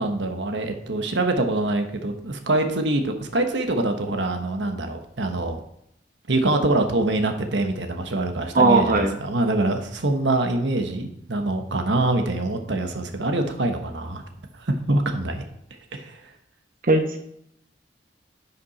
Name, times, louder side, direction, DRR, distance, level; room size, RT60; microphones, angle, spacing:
voice 1, 0.0-5.6 6.3-14.2 14.6-15.4 15.9-16.2, right 2 dB, 85° right, 5 dB, 1.2 m, -24 dB
voice 2, 8.5-9.1 16.9-17.2, right 3 dB, 50° right, 4 dB, 1.0 m, -18 dB
10.5 x 6.0 x 4.1 m, 0.74 s
head